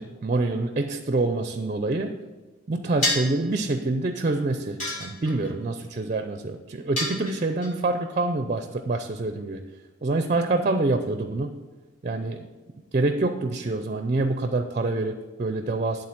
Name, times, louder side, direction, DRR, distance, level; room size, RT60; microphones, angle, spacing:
voice 1, 0.0-2.1 2.7-9.6 10.0-11.6 12.0-12.5 12.9-16.1, right 2 dB, 40° right, 8 dB, 0.5 m, -26 dB
sound 1, 3.0-3.4 4.8-5.5 7.0-7.7, left 1 dB, 40° left, 3.2 m, -28 dB
11.5 x 3.8 x 7.5 m, 1.3 s
head